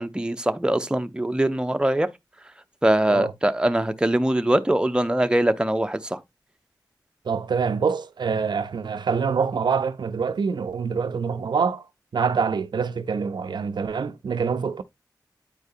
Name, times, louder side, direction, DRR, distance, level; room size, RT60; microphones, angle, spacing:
voice 1, 0.0-2.1 2.8-6.2, right 1 dB, 10° right, 0.6 m, -22 dB
voice 2, 7.2-11.9 12.1-14.8, right 5 dB, 90° right, 0.5 m, -25 dB
8.9 x 4.7 x 2.6 m
wide cardioid pair, 60°, 7 cm